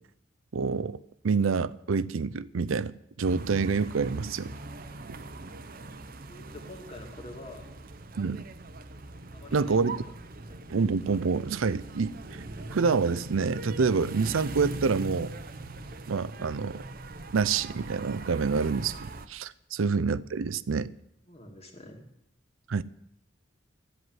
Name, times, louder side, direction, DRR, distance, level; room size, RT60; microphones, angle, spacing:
voice 1, 0.5-4.5 8.2-8.4 9.5-10.0 10.7-12.4 12.7-15.3 16.1-16.8 17.3-20.9 22.7-22.8, right 5 dB, 85° right, 0.5 m, -27 dB
sound 1, 3.2-19.3, right 2 dB, 45° right, 0.8 m, -41 dB
voice 2, 6.3-7.8 9.3-9.8 21.3-22.0, left 2 dB, 30° left, 2.3 m, -46 dB
13.0 x 8.0 x 9.4 m
head